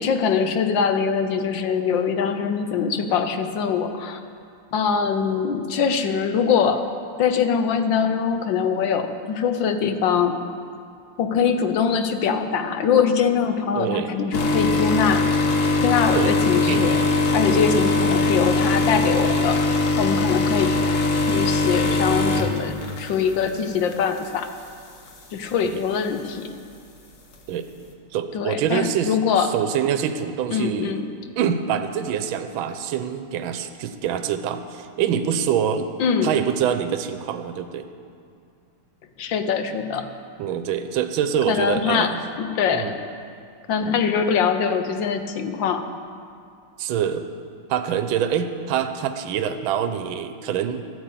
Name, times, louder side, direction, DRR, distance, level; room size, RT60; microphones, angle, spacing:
voice 1, 0.0-4.2 4.7-6.8 7.2-10.4 11.2-15.4 15.8-17.0 17.3-19.6 20.0-20.7 21.3-24.5 25.3-26.5 28.3-29.5 30.5-31.1 36.0-36.4 39.2-40.1 41.5-42.1 42.4-43.0 43.7-45.8, left 6 dB, 65° left, 8 dB, 1.5 m, -23 dB
voice 2, 13.7-14.1 16.1-16.3 16.7-16.8 25.6-25.8 27.5-27.7 28.1-29.2 29.5-31.0 31.4-35.9 36.2-37.9 40.4-42.2 42.7-42.9 46.8-47.3 47.7-50.8, right 8 dB, 75° right, 8 dB, 1.5 m, -25 dB
sound 1, 14.3-23.5 23.9-24.2 25.1-25.2, left 3 dB, 45° left, 1.4 m, -21 dB
13.5 x 9.5 x 8.3 m, 2.4 s
omnidirectional pair, 2.3 m